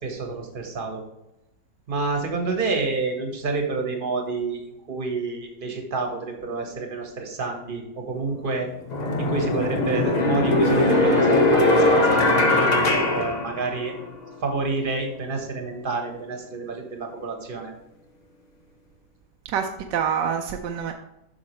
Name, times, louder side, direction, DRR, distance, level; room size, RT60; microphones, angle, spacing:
voice 1, 0.0-1.0 1.9-8.7 9.2-13.9 14.4-17.7, right 3 dB, 30° right, 2 dB, 1.3 m, -29 dB
sound 1, 8.1-8.3 8.9-14.1, left 2 dB, 40° left, 0.6 m, -20 dB
voice 2, 19.4-20.9, right 8 dB, 80° right, 3 dB, 1.2 m, -26 dB
8.5 x 6.1 x 3.1 m, 0.89 s
omnidirectional pair, 1.9 m